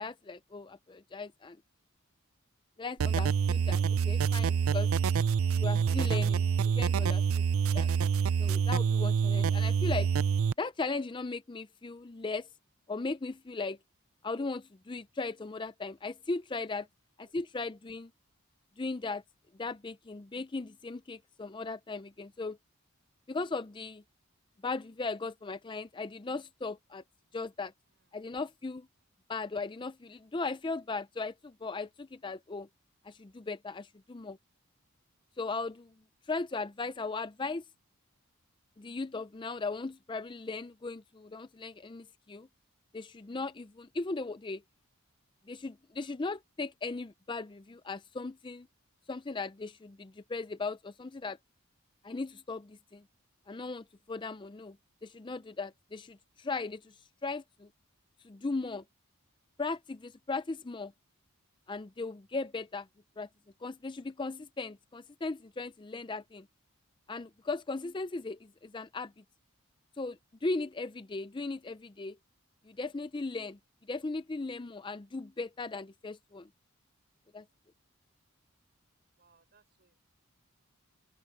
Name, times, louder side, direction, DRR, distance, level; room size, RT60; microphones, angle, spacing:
voice 1, 0.0-1.6 2.8-4.9 5.6-6.5 6.7-7.4 7.7-7.9 8.4-10.1 10.6-12.5 12.9-13.8 14.2-16.9 17.2-18.1 18.8-19.2 19.6-22.6 23.3-24.0 24.6-27.0 27.3-27.7 28.1-28.9 29.3-32.7 33.0-34.4 35.4-35.9 36.3-37.6 38.8-42.5 42.9-44.6 45.5-48.7 49.1-51.4 52.0-53.0 53.5-54.8 55.0-57.0 57.2-57.7 58.2-58.8 59.6-60.9 61.7-62.9 63.2-63.3 63.6-66.5 67.1-69.1 70.0-72.2 72.7-73.6 73.9-76.5 77.3-77.4, left 3 dB, 20° left, 0.4 m, -37 dB
sound 1, 3.0-10.5, right 7 dB, 70° right, 0.4 m, -27 dB
voice 2, 79.2-80.1, right 4 dB, 45° right, 6.2 m, -68 dB
open air
head